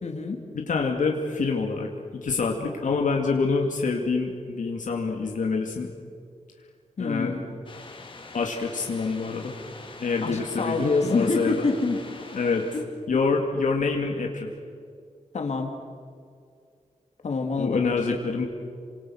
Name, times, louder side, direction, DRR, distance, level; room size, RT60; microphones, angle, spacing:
voice 1, 0.0-0.4 7.0-7.4 10.2-12.0 12.7-12.8 15.3-15.7 17.2-18.2, left 3 dB, 60° left, 3 dB, 3.1 m, -26 dB
voice 2, 0.5-1.9 2.2-5.9 7.0-7.3 8.3-9.5 10.0-11.7 12.3-12.7 13.1-14.5 17.6-18.4, left 4 dB, 85° left, 1 dB, 2.5 m, -26 dB
sound 1, 7.7-12.8, left 3 dB, 40° left, 3.2 m, -44 dB
29.0 x 26.0 x 6.4 m, 2.2 s
wide cardioid pair, 170°, 13 cm